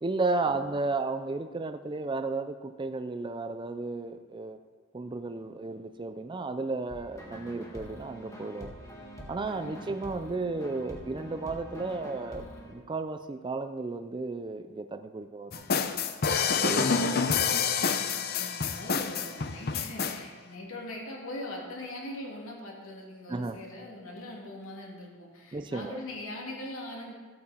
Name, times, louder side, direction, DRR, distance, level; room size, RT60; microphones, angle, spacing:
voice 1, 0.0-4.6 4.9-8.7 9.3-16.0 16.6-17.2 23.3-23.6 25.5-26.0, right 3 dB, 20° right, 10 dB, 0.3 m, -33 dB
sound 1, 6.9-12.7, equal, 15° left, 1.7 m, -45 dB
voice 2, 9.6-9.9 18.1-27.1, left 1 dB, 70° left, -2 dB, 2.8 m, -41 dB
sound 2, 15.5-20.2, left 6 dB, 45° left, 0.6 m, -27 dB
14.5 x 8.4 x 4.4 m, 1.4 s
head